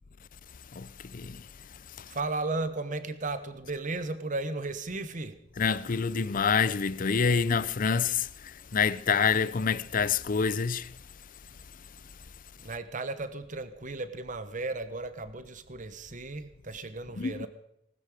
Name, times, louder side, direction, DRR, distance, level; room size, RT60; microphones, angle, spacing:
voice 1, 0.8-1.4 5.6-8.3 8.7-10.9 17.2-17.5, left 6 dB, 45° left, 0.6 m, -27 dB
voice 2, 2.1-5.4 12.6-17.5, right 2 dB, 45° right, 1.2 m, -35 dB
19.5 x 13.0 x 5.0 m
head